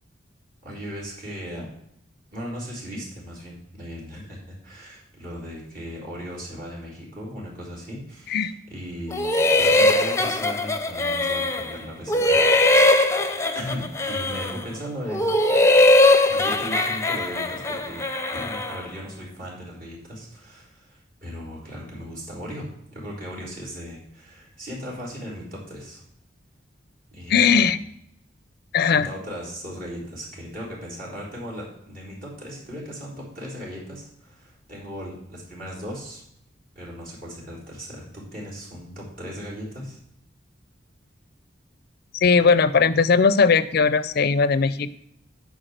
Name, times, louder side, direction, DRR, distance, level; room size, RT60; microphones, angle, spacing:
voice 1, 0.6-1.7 2.3-12.8 13.5-15.3 16.3-18.0 18.3-26.0 27.1-27.7 28.8-36.2 36.7-40.0, equal, 50° right, -4 dB, 3.9 m, -37 dB
sound 1, 9.1-11.8 12.1-14.7 15.1-18.8, left 2 dB, 15° left, 0.6 m, -20 dB
voice 2, 27.3-27.8 28.7-29.1 42.1-44.9, left 5 dB, 55° left, 15 dB, 0.5 m, -19 dB
10.0 x 4.9 x 6.5 m, 0.76 s
head